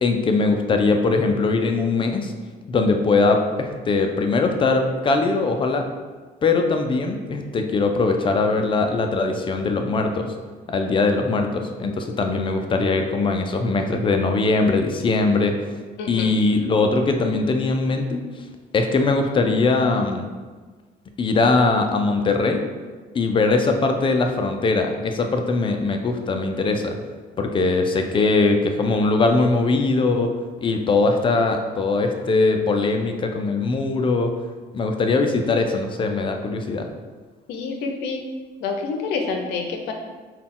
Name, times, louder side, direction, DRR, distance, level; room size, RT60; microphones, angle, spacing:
voice 1, 0.0-2.3 2.7-5.9 6.4-10.3 10.7-15.5 16.1-18.2 18.7-20.3 21.2-22.6 23.1-26.9 27.4-30.3 30.6-34.3 34.7-36.9, left 3 dB, 30° left, 4 dB, 0.4 m, -21 dB
voice 2, 16.0-16.3 37.5-38.2 38.6-39.9, left 4 dB, 85° left, 3 dB, 0.6 m, -27 dB
3.9 x 2.3 x 3.7 m, 1.4 s
cardioid pair, 110°, 17 cm